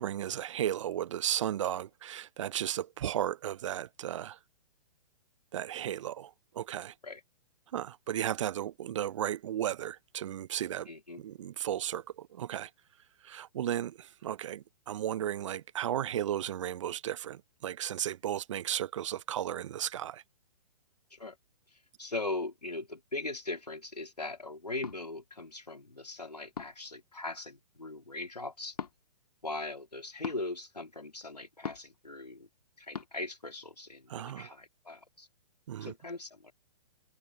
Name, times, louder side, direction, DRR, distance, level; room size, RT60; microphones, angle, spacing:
voice 1, 0.0-4.4 5.5-6.9 7.7-10.9 11.2-12.7 13.2-20.2 34.1-34.5 35.7-35.9, right 11 dB, 50° right, 0.8 m, -34 dB
voice 2, 10.9-11.2 21.1-21.4 22.0-28.8 29.4-32.5 32.8-35.3 35.8-36.5, left 2 dB, 85° left, 3.4 m, -40 dB
sound 1, 24.8-25.0 26.5-26.9 28.7-28.9 30.2-30.4 31.6-32.0 32.9-33.1, left 6 dB, 70° left, 1.8 m, -39 dB
figure-of-eight pair, 120°, 20 cm